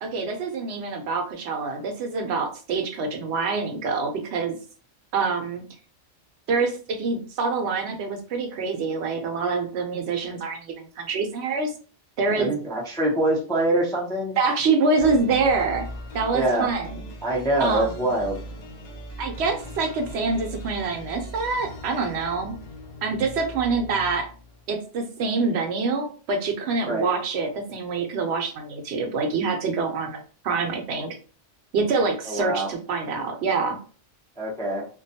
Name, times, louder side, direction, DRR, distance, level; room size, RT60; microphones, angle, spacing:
voice 1, 0.0-4.6 5.1-5.6 6.5-11.7 12.2-12.5 14.4-15.9 16.1-17.0 17.6-18.1 19.2-22.5 23.0-24.3 24.7-31.2 31.7-33.8, right 4 dB, 70° right, 4 dB, 0.8 m, -26 dB
voice 2, 12.3-14.4 16.3-16.7 17.2-18.4 26.8-27.1 32.3-32.7 34.4-34.9, right 1 dB, 5° left, -4 dB, 0.3 m, -24 dB
sound 1, 15.0-24.8, equal, 50° left, 0.6 m, -39 dB
2.4 x 2.2 x 2.7 m, 0.39 s
omnidirectional pair, 1.2 m